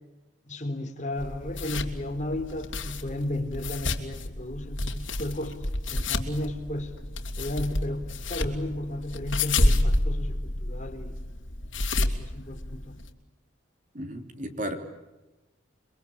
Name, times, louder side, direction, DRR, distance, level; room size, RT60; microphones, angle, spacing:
voice 1, 0.4-5.6 5.9-6.9 7.4-11.1 11.8-13.0, left 1 dB, 40° left, 5 dB, 3.7 m, -34 dB
sound 1, 1.2-13.1, left 2 dB, 75° left, 2.9 m, -30 dB
voice 2, 13.9-14.7, right 1 dB, 40° right, 6 dB, 3.3 m, -34 dB
29.5 x 23.0 x 8.7 m, 1.1 s
head